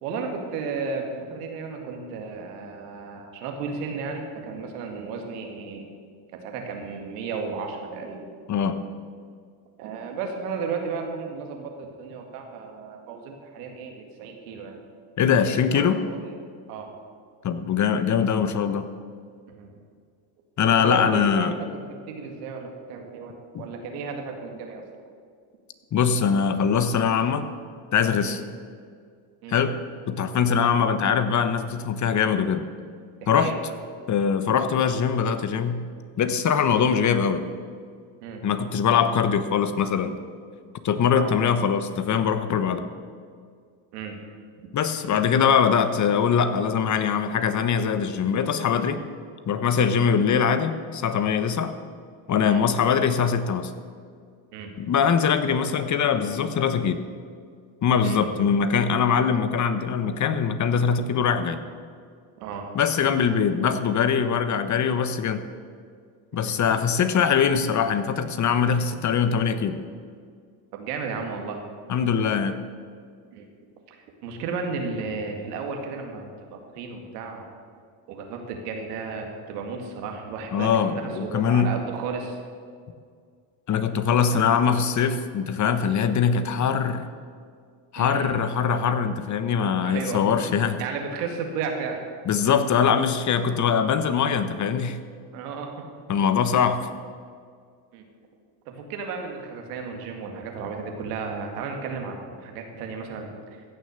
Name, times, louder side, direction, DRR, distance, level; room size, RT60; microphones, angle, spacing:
voice 1, 0.0-5.9 6.3-8.2 9.8-14.8 15.5-16.3 16.7-16.9 19.5-19.7 20.8-21.5 21.9-24.8 28.2-28.4 29.4-29.6 33.2-33.8 38.2-38.4 41.2-41.4 43.9-44.2 52.5-52.7 54.5-54.7 58.0-58.3 62.4-62.7 63.0-63.1 66.3-66.6 70.7-71.6 73.3-73.5 73.9-74.0 74.2-77.5 78.1-82.4 84.3-84.6 88.0-88.3 89.8-90.3 90.8-92.2 95.3-95.7 97.9-98.0 98.7-103.3, right 5 dB, 90° right, 3 dB, 2.1 m, -34 dB
voice 2, 8.5-8.8 15.2-16.0 17.4-18.8 20.6-21.5 23.5-23.6 25.9-27.5 27.9-28.4 29.5-29.8 30.1-32.6 33.3-33.5 34.1-35.8 36.2-37.4 38.4-40.2 40.8-42.8 44.7-49.0 49.5-51.7 52.3-53.7 54.8-57.0 57.8-61.6 62.7-65.4 66.3-69.8 71.9-72.6 80.5-81.7 83.7-87.1 87.9-90.8 92.3-95.0 96.1-96.9, left 7 dB, 40° left, 10 dB, 1.0 m, -22 dB
15.5 x 6.6 x 6.8 m, 2.1 s
supercardioid pair, 95°, 45 cm